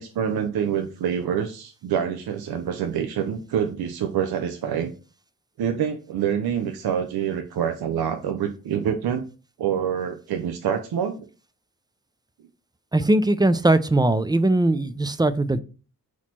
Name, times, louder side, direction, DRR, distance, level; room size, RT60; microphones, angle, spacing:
voice 1, 0.0-4.9 5.6-9.3 9.6-11.3, right 8 dB, 65° right, 6 dB, 0.6 m, -26 dB
voice 2, 12.9-15.6, right 2 dB, 10° right, 13 dB, 0.4 m, -20 dB
4.1 x 3.0 x 4.1 m, 0.35 s
supercardioid pair, 45°, 39 cm